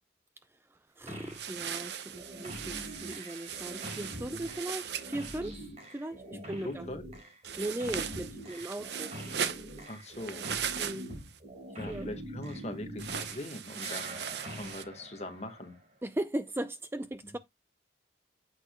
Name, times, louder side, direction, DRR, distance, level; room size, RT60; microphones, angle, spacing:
voice 1, 0.7-5.7 5.9-6.9 7.6-9.1 10.8-11.1 11.9-12.1 16.0-17.4, right 1 dB, 10° right, 0.4 m, -38 dB
sound 1, 1.1-1.5 1.7-13.5 13.8-16.0, equal, 35° right, 5.4 m, -44 dB
sound 2, 1.3-5.4 7.4-11.4 13.0-14.8, right 8 dB, 65° right, 0.8 m, -38 dB
voice 2, 6.3-7.0 9.9-10.4 11.8-14.2 14.6-15.7, left 1 dB, 35° left, 1.5 m, -41 dB
9.6 x 8.4 x 2.2 m
head